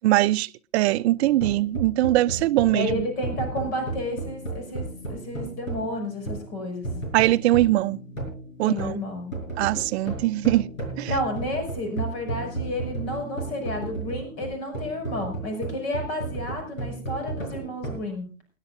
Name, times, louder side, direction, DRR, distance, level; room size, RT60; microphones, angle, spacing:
voice 1, 0.0-3.1 7.1-8.0 8.6-8.9 9.6-10.7 11.0-11.1, right 16 dB, 55° right, 0.6 m, -21 dB
sound 1, 1.2-18.0, right 2 dB, 85° left, 5.3 m, -34 dB
voice 2, 2.7-6.9 8.6-9.4 11.0-18.3, left 1 dB, 55° left, 6.4 m, -31 dB
29.0 x 10.5 x 2.6 m
figure-of-eight pair, 95°, 39 cm